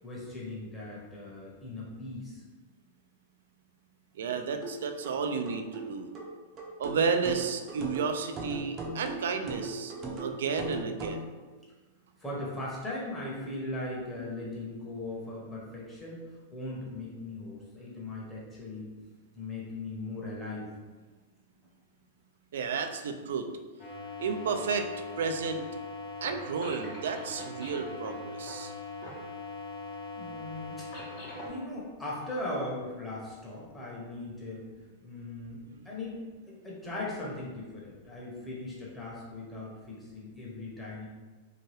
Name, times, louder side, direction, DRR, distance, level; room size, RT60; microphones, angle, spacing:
voice 1, 0.0-2.4 12.2-16.2 16.5-18.9 19.4-20.7 30.1-30.9 31.4-34.6 35.0-36.2 36.5-41.1, left 2 dB, 10° left, -6 dB, 0.9 m, -39 dB
voice 2, 4.2-6.1 6.8-11.3 22.5-23.5 24.2-24.8 25.2-25.6 26.2-28.7, right 5 dB, 80° right, 6 dB, 0.3 m, -32 dB
sound 1, 4.6-11.3, right 2 dB, 30° right, 0.5 m, -39 dB
sound 2, 23.8-31.5, left 2 dB, 50° left, 1.0 m, -41 dB
2.8 x 2.2 x 3.2 m, 1.3 s
hypercardioid pair, 135°, 0 cm